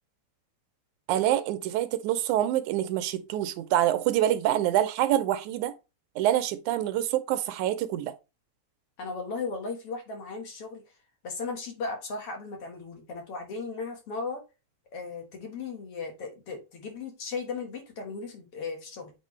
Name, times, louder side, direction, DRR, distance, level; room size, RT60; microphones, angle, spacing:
voice 1, 1.1-5.7 6.2-8.2, right 12 dB, 80° right, 2.1 m, -26 dB
voice 2, 9.0-10.8 11.2-14.4 14.9-19.1, left 4 dB, 55° left, 2.2 m, -36 dB
8.2 x 4.6 x 3.2 m
omnidirectional pair, 3.5 m